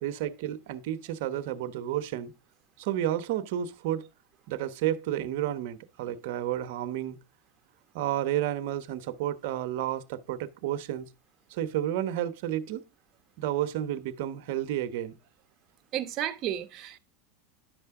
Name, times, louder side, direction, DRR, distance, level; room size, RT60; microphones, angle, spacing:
voice 1, 0.0-2.3 2.8-4.1 4.5-7.2 7.9-11.1 11.5-12.8 13.4-15.1, right 12 dB, 65° right, 1.0 m, -31 dB
voice 2, 15.9-17.0, right 11 dB, 45° right, 1.1 m, -32 dB
10.5 x 6.8 x 3.7 m
supercardioid pair, 115°, 0 cm